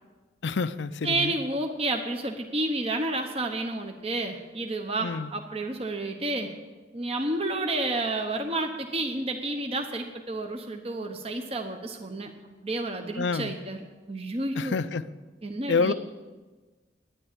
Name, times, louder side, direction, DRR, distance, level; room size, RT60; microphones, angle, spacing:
voice 1, 0.4-1.3 5.0-5.3 13.2-13.5 14.6-15.1 15.7-15.9, left 4 dB, 75° left, 14 dB, 0.5 m, -28 dB
voice 2, 1.0-6.5 6.9-13.8 14.1-14.8 15.4-15.9, right 2 dB, 30° right, 4 dB, 1.0 m, -30 dB
10.0 x 10.0 x 9.9 m, 1.3 s
head